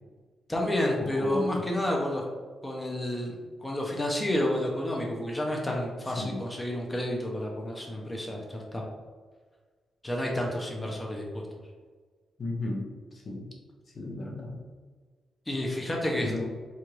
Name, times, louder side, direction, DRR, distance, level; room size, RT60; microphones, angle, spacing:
voice 1, 0.5-2.2 2.6-3.3 3.6-8.8 10.0-11.5 15.5-16.3, left 1 dB, 15° left, -1 dB, 0.7 m, -30 dB
voice 2, 1.0-1.6 6.1-6.4 12.4-13.5 13.9-14.6 16.2-16.5, left 2 dB, 50° left, -1 dB, 0.8 m, -35 dB
4.2 x 2.5 x 3.1 m, 1.5 s
cardioid pair, 75°, 0 cm